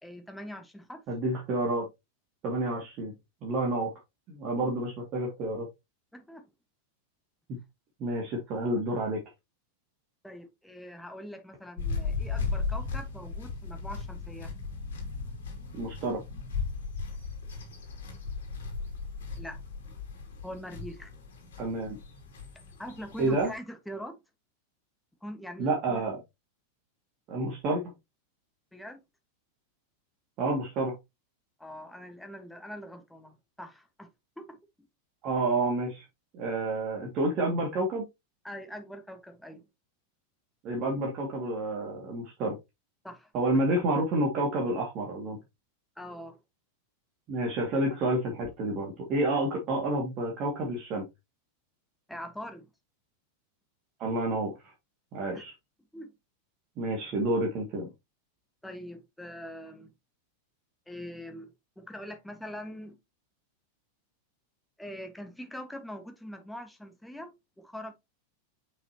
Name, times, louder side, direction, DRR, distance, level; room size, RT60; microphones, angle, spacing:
voice 1, 0.0-1.0 4.6-4.7 6.1-6.5 10.2-14.5 19.4-19.6 20.4-21.1 22.8-24.2 25.2-26.0 28.7-29.0 31.6-34.1 34.4-34.6 38.4-39.6 43.0-43.3 46.0-46.4 52.1-52.7 55.3-55.4 55.9-56.1 58.6-59.9 60.9-63.0 64.8-67.9, equal, 5° left, 1.5 m, -43 dB
voice 2, 1.1-1.9 2.4-3.1 3.4-3.9 4.3-5.7 7.5-7.6 8.0-9.2 15.7-16.2 21.6-22.0 23.2-23.5 25.6-26.2 27.3-27.8 30.4-31.0 35.2-36.1 36.3-38.1 40.6-42.6 43.3-45.4 47.3-51.1 54.0-54.7 55.1-55.5 56.8-57.9, right 2 dB, 35° right, 2.1 m, -29 dB
sound 1, 11.8-23.6, left 4 dB, 60° left, 3.1 m, -36 dB
6.4 x 5.8 x 2.9 m
figure-of-eight pair, 90°, 0 cm